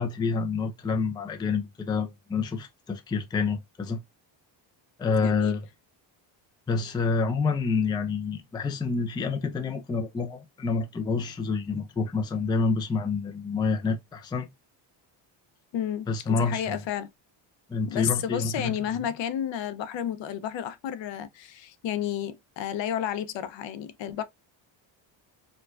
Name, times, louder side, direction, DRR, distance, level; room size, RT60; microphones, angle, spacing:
voice 1, 0.0-4.0 5.0-5.6 6.7-14.5 16.1-16.8 17.7-18.8, left 4 dB, 10° left, 0.3 m, -28 dB
voice 2, 5.2-5.6 15.7-17.1 17.9-24.2, left 10 dB, 65° left, 0.7 m, -31 dB
4.4 x 2.3 x 2.4 m
cardioid pair, 145°, 48 cm